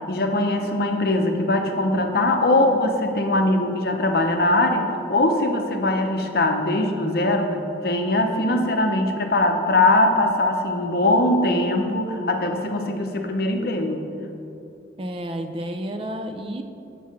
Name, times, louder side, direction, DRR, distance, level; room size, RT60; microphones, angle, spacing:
voice 1, 0.1-14.0, left 2 dB, 55° left, 4 dB, 0.7 m, -21 dB
voice 2, 15.0-16.6, equal, 30° right, 6 dB, 0.4 m, -30 dB
8.1 x 4.7 x 6.0 m, 2.7 s
head